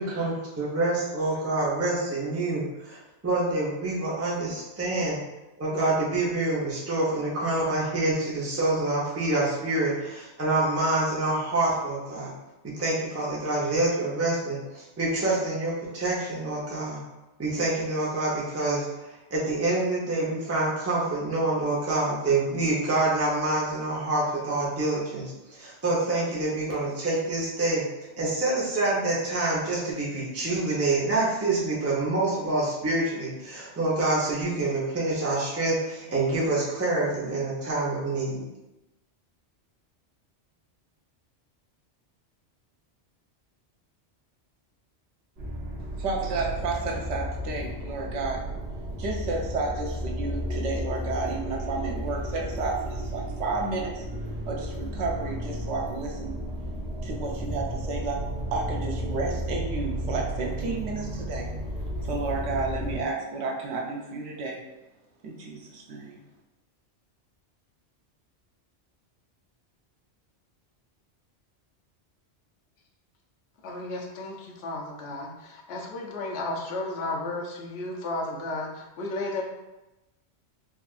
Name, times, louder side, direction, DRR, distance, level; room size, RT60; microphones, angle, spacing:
voice 1, 0.0-5.2 5.6-12.3 12.7-17.0 17.4-27.8 28.2-38.4, right 2 dB, 15° right, -6 dB, 0.6 m, -27 dB
sound 1, 45.4-63.0, equal, 60° right, 1.2 m, -33 dB
voice 2, 46.0-48.4 49.0-54.0 54.5-56.4 57.0-61.5 62.0-64.6 65.2-66.2, right 3 dB, 80° right, 0 dB, 1.0 m, -31 dB
voice 3, 73.6-79.4, left 2 dB, 65° left, -1 dB, 0.8 m, -33 dB
4.1 x 2.4 x 2.4 m, 1.0 s
omnidirectional pair, 1.2 m